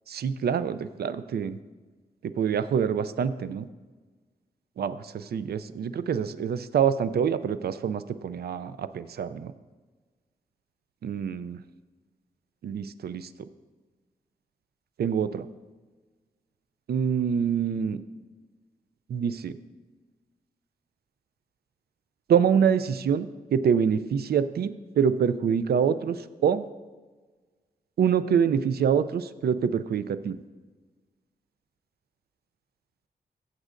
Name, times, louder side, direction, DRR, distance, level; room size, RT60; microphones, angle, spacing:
voice 1, 0.1-1.6 2.2-3.7 4.8-9.5 11.0-11.6 12.6-13.3 15.0-15.5 16.9-18.0 19.1-19.6 22.3-26.2 26.4-26.6 28.0-30.4, right 7 dB, 80° right, 14 dB, 0.4 m, -25 dB
14.5 x 7.4 x 2.5 m, 1.3 s
wide cardioid pair, 130°, 16 cm